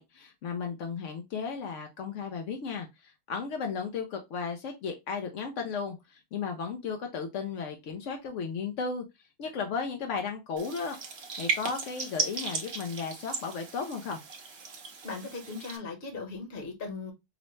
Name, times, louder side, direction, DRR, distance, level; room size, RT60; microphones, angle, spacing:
voice 1, 0.0-9.1 9.4-11.0 11.4-14.2, left 5 dB, 80° left, 0.6 m, -35 dB
sound 1, 10.6-15.8, right 4 dB, 55° right, 0.7 m, -36 dB
voice 2, 15.0-17.1, left 4 dB, 40° left, 1.0 m, -38 dB
5.2 x 2.1 x 3.0 m
omnidirectional pair, 2.0 m